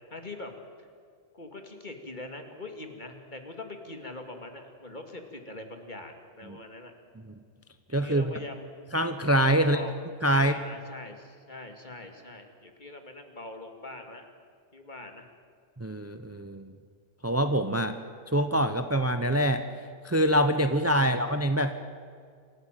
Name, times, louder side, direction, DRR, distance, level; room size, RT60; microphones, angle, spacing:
voice 1, 0.1-0.9 1.3-6.9 8.0-8.8 9.6-10.0 10.3-14.3 14.7-15.3, left 2 dB, 40° left, 5 dB, 2.5 m, -42 dB
voice 2, 7.9-8.3 8.9-9.8 10.2-10.5 15.8-16.7 17.2-18.0 18.3-19.6 20.0-21.8, equal, 15° right, 9 dB, 0.8 m, -25 dB
26.5 x 14.5 x 9.2 m, 2.2 s
omnidirectional pair, 1.2 m